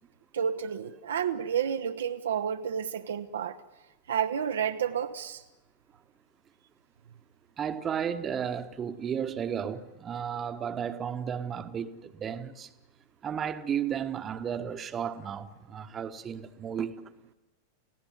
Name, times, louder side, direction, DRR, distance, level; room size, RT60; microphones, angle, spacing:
voice 1, 0.3-3.6 4.1-5.4, right 8 dB, 65° right, 0.9 m, -30 dB
voice 2, 7.6-12.7 13.2-17.1, right 8 dB, 25° right, 1.3 m, -33 dB
30.0 x 16.5 x 9.6 m
figure-of-eight pair, 90°, 0 cm